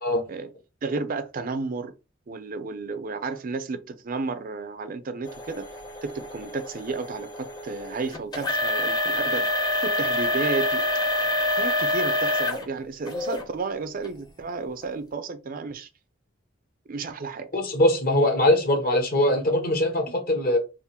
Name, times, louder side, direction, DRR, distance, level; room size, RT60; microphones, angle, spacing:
voice 1, 0.8-1.9 2.3-5.7 6.0-9.5 9.8-10.8 11.6-15.9 16.9-17.5, right 4 dB, 45° right, 0.5 m, -32 dB
sound 1, 5.3-12.7 13.1-13.4 14.0-14.1 14.8-14.9, left 1 dB, 20° left, 0.8 m, -27 dB
voice 2, 17.5-20.6, left 1 dB, 50° left, 1.2 m, -22 dB
3.6 x 2.0 x 4.2 m
head